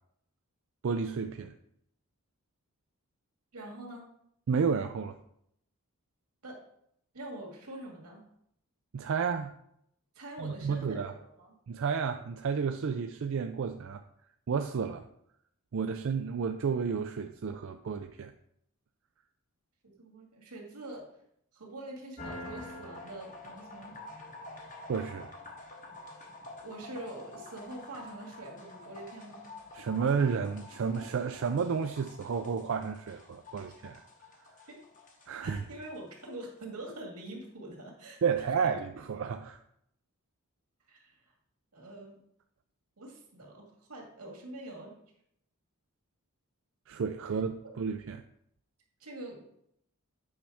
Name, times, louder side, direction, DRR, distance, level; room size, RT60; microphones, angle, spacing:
voice 1, 0.8-1.5 4.5-5.2 8.9-9.5 10.4-11.1 11.7-14.0 14.5-15.0 15.7-18.3 24.9-25.3 29.7-34.0 35.3-35.6 38.2-39.6 46.9-48.2, right 6 dB, 60° right, 6 dB, 0.4 m, -31 dB
voice 2, 3.5-4.1 6.4-6.6 7.1-8.2 10.1-11.6 20.0-21.1 21.5-23.9 26.6-29.5 34.7-34.8 35.4-38.8 40.9-41.3 41.7-42.2 43.0-44.9 49.0-49.4, right 1 dB, 90° right, 0 dB, 2.1 m, -45 dB
sound 1, 22.2-36.3, left 2 dB, 35° left, 1.1 m, -48 dB
8.6 x 5.7 x 3.5 m, 0.73 s
head